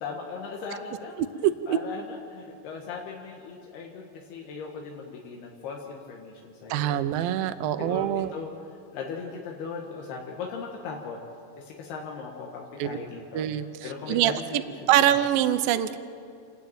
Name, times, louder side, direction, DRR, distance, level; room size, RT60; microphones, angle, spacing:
voice 1, 0.0-1.2 1.7-7.0 7.8-8.5 8.9-11.2 11.6-14.3 15.0-15.1, left 5 dB, 85° left, -1 dB, 3.5 m, -38 dB
voice 2, 1.4-1.8 6.7-8.3 12.8-13.0 13.3-13.6 14.1-14.6 14.9-16.0, right 12 dB, 75° right, 11 dB, 2.4 m, -24 dB
28.5 x 10.5 x 9.0 m, 2.4 s
omnidirectional pair, 4.4 m